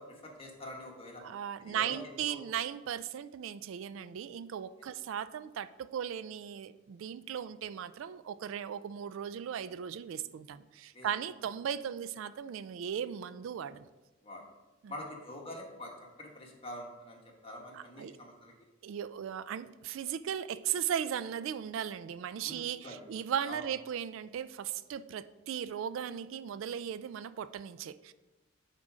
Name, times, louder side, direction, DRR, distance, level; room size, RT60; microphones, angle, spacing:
voice 1, 0.0-1.2 1.6-2.4 10.9-11.1 14.2-14.4 14.9-15.9 16.2-18.5 22.4-23.0 23.5-23.6, left 1 dB, 25° left, 0 dB, 1.3 m, -45 dB
voice 2, 1.2-13.9 14.8-14.9 17.7-18.2 18.8-28.1, right 9 dB, 70° right, 14 dB, 0.3 m, -37 dB
9.4 x 3.7 x 4.9 m, 1.1 s
head